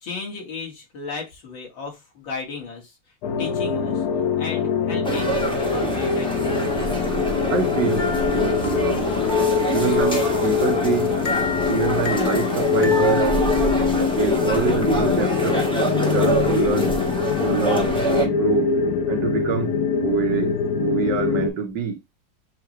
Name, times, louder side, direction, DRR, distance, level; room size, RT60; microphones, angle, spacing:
voice 1, 0.0-2.9 3.4-4.0 4.4-6.8 14.3-14.5, left 4 dB, 85° left, 2.5 m, -35 dB
sound 1, 3.2-21.5, left 6 dB, 70° left, 1.0 m, -23 dB
sound 2, 5.0-18.3, right 3 dB, 5° left, 0.8 m, -26 dB
voice 2, 7.5-8.0 8.4-9.1 9.7-11.2 11.7-13.3 14.1-15.7 15.9-17.0 17.4-17.9 18.2-18.7 19.1-19.8 20.0-22.0, right 6 dB, 70° right, 1.6 m, -26 dB
sound 3, 8.0-14.2, left 1 dB, 50° left, 0.6 m, -32 dB
6.9 x 2.3 x 3.1 m
omnidirectional pair, 2.0 m